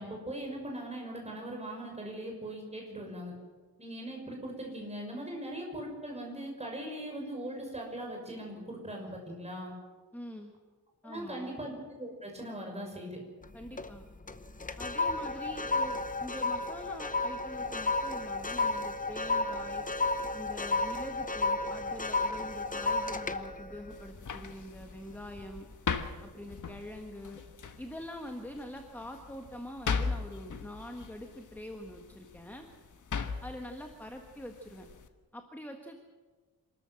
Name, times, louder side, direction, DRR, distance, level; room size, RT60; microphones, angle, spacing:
voice 1, 0.0-3.3 3.8-9.7 11.0-13.2, right 1 dB, 15° right, 1 dB, 6.0 m, -40 dB
voice 2, 10.1-10.5 11.0-11.5 13.5-14.0 14.8-19.9 20.3-25.6 26.3-27.4 27.8-32.7 33.4-34.9 35.3-36.0, left 1 dB, 5° left, 4 dB, 1.5 m, -44 dB
sound 1, 13.4-14.0 14.3-24.8 25.3-25.6, left 3 dB, 20° left, 0.9 m, -32 dB
sound 2, 23.9-35.1, left 5 dB, 55° left, 1.4 m, -39 dB
27.0 x 13.5 x 7.7 m, 1.4 s
wide cardioid pair, 120°, 37 cm